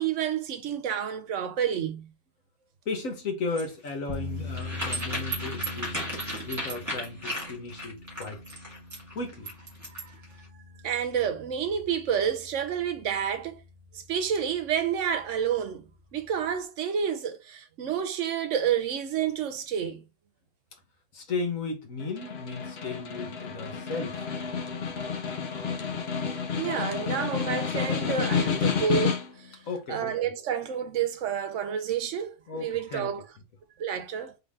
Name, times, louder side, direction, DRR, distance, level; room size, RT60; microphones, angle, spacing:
voice 1, 0.0-2.1 10.0-10.1 10.8-13.6 13.9-20.0 26.6-29.6 29.9-33.2 33.8-34.4, right 8 dB, 70° right, 1.0 m, -29 dB
voice 2, 2.8-6.0 6.5-8.4 9.1-9.5 21.1-24.2 29.6-30.1 32.5-33.1, left 3 dB, 85° left, 1.7 m, -35 dB
sound 1, 3.5-10.2, right 1 dB, 15° right, 1.8 m, -35 dB
sound 2, 4.1-16.6, left 3 dB, 30° left, 1.6 m, -43 dB
Snare drum, 22.0-29.5, left 6 dB, 55° left, 1.0 m, -30 dB
3.9 x 3.3 x 3.6 m
omnidirectional pair, 1.3 m